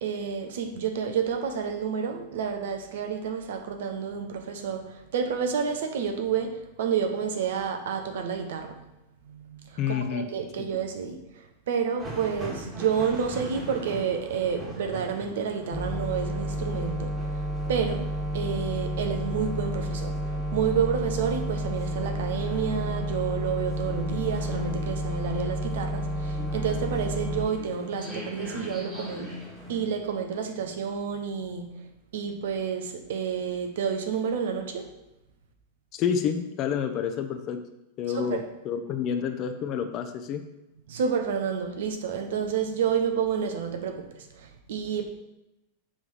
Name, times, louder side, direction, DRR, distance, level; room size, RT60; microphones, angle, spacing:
voice 1, 0.0-8.8 9.2-31.8 32.1-34.9 38.1-38.4 40.9-45.1, right 7 dB, 65° right, 5 dB, 1.0 m, -30 dB
voice 2, 9.8-10.3 10.6-10.7 35.9-37.6 38.0-40.4, left 7 dB, 40° left, 7 dB, 0.8 m, -29 dB
sound 1, 12.0-29.8, left 1 dB, 20° right, 2.1 m, -41 dB
sound 2, 15.7-27.5, equal, 5° right, 1.2 m, -31 dB
7.1 x 3.7 x 4.9 m, 0.93 s
hypercardioid pair, 95°, 0 cm